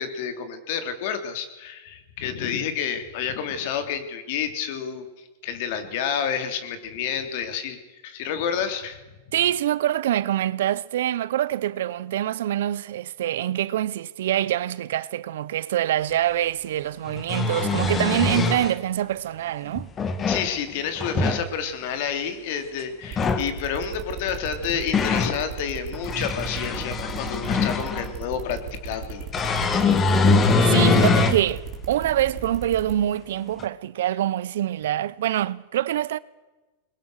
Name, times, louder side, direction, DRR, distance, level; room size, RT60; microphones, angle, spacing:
voice 1, 0.0-5.0 5.4-7.8 8.0-9.0 20.3-29.3, left 7 dB, 55° left, 3.5 m, -29 dB
voice 2, 9.3-19.9 30.6-36.2, right 12 dB, 75° right, 0.8 m, -25 dB
sound 1, 16.1-16.2 17.1-18.7 19.8-20.5 21.0-21.4 23.0-23.5 24.4-25.4 25.9-28.1 29.3-31.4 32.0-32.1 33.6-33.7, left 4 dB, 20° left, 2.0 m, -22 dB
sound 2, 23.1-32.9, right 6 dB, 40° right, 5.3 m, -36 dB
21.5 x 21.5 x 6.6 m
supercardioid pair, 140°, 0 cm